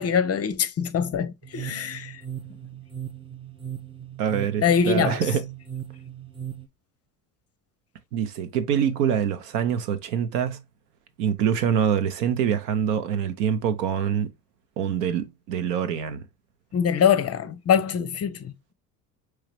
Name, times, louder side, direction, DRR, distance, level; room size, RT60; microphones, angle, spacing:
voice 1, 0.0-2.1 4.6-5.2 16.7-18.5, left 7 dB, 30° left, 0.6 m, -23 dB
sound 1, 1.4-6.7, right 9 dB, 10° right, 0.4 m, -38 dB
voice 2, 4.2-5.5 8.1-10.6 11.2-14.3 14.8-16.2, right 8 dB, 70° right, 1.0 m, -25 dB
4.7 x 3.2 x 3.2 m
hypercardioid pair, 65°, 50 cm